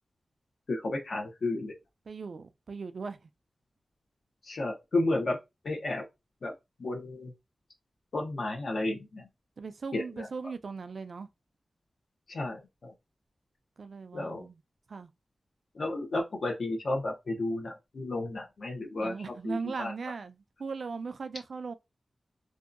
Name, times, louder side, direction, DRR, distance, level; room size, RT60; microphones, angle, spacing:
voice 1, 0.7-1.8 4.4-5.4 5.6-6.0 6.4-6.5 6.8-7.3 8.1-9.3 9.9-10.3 12.3-12.9 14.1-14.4 15.7-19.9, left 2 dB, 75° left, 0.7 m, -32 dB
voice 2, 2.1-3.2 9.6-11.3 13.8-14.6 14.9-15.1 19.0-21.7, right 4 dB, 70° right, 0.3 m, -38 dB
2.6 x 2.2 x 2.4 m
wide cardioid pair, 85°, 0 cm